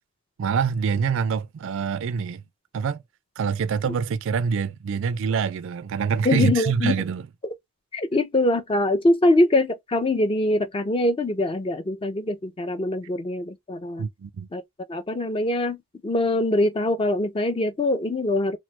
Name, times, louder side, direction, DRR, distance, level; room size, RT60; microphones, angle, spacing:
voice 1, 0.4-2.4 2.7-3.0 3.4-7.3 14.0-14.5, right 6 dB, 60° right, 0.3 m, -25 dB
voice 2, 6.2-6.9 7.9-14.1 14.5-14.6 14.9-15.8 16.0-18.6, left 2 dB, 25° left, 0.4 m, -23 dB
3.0 x 2.1 x 3.1 m
head